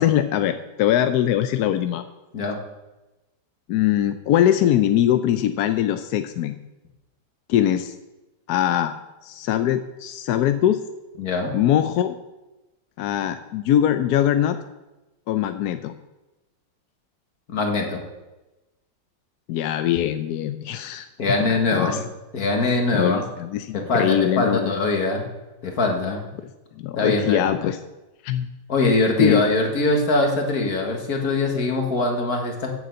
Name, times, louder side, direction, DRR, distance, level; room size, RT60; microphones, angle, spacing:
voice 1, 0.0-2.0 3.7-6.6 7.5-7.9 8.5-8.9 9.2-10.8 11.5-12.2 13.0-14.6 15.3-15.9 19.5-21.1 21.5-22.0 22.9-24.8 26.8-27.8 28.2-28.5 29.2-29.4, left 11 dB, 70° left, 9 dB, 1.0 m, -22 dB
voice 2, 11.2-11.6 17.5-18.0 21.2-22.0 22.3-23.2 23.7-25.2 25.6-26.2 27.0-27.5 28.7-32.7, left 2 dB, 55° left, 3 dB, 2.0 m, -22 dB
9.1 x 6.7 x 7.8 m, 1.0 s
omnidirectional pair, 2.0 m